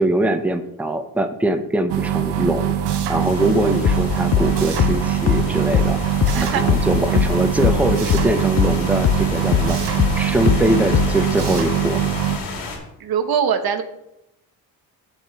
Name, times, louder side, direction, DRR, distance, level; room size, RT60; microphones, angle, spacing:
voice 1, 0.0-9.8 10.2-12.0, right 1 dB, 5° right, 8 dB, 0.8 m, -22 dB
sound 1, 1.9-12.4, right 10 dB, 85° right, 1.1 m, -23 dB
sound 2, 3.2-12.8, left 4 dB, 85° left, 2.5 m, -33 dB
sound 3, 3.8-8.8 9.0-11.3, left 10 dB, 40° left, 0.4 m, -20 dB
voice 2, 13.0-13.8, right 7 dB, 60° right, 8 dB, 1.1 m, -21 dB
7.2 x 6.6 x 4.7 m, 0.87 s
cardioid pair, 80°, 41 cm